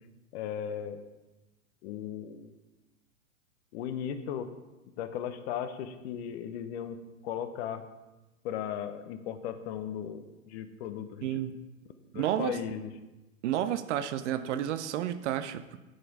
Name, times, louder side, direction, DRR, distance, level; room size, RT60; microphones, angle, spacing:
voice 1, 0.3-1.0 1.8-2.5 3.7-4.5 5.0-7.0 7.2-7.8 8.4-11.4 12.1-12.9, left 9 dB, 50° left, 10 dB, 0.9 m, -36 dB
voice 2, 11.2-11.6 12.1-12.6 13.4-15.8, right 11 dB, 55° right, 12 dB, 0.7 m, -31 dB
8.0 x 7.6 x 4.7 m, 1.1 s
hypercardioid pair, 100°, 42 cm